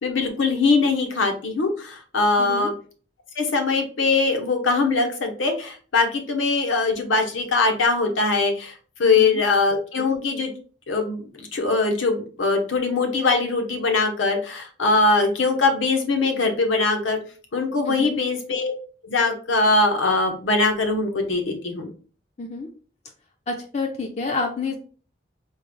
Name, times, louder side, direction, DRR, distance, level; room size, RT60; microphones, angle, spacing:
voice 1, 0.0-2.7 3.4-8.7 9.0-10.5 10.9-17.2 17.5-18.7 19.0-21.9, left 3 dB, 90° left, 4 dB, 0.7 m, -22 dB
voice 2, 2.4-2.7 9.0-9.4 17.9-18.2 22.4-22.7 23.5-24.8, left 3 dB, 35° left, 3 dB, 0.4 m, -29 dB
3.6 x 2.1 x 3.0 m, 0.40 s
head